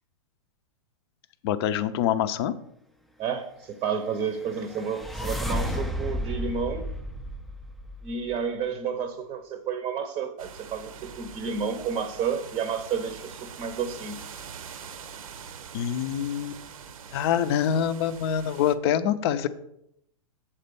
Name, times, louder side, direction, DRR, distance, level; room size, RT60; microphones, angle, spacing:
voice 1, 1.4-2.5 15.7-16.6 17.1-19.5, left 9 dB, 45° left, 13 dB, 0.6 m, -25 dB
voice 2, 3.2-6.9 8.0-14.2, right 6 dB, 25° right, 9 dB, 0.7 m, -31 dB
sound 1, 4.2-8.3, equal, ahead, 0.4 m, -33 dB
sound 2, 10.4-18.8, right 7 dB, 75° right, 0.8 m, -43 dB
7.4 x 4.3 x 6.8 m, 0.75 s
hypercardioid pair, 135°, 18 cm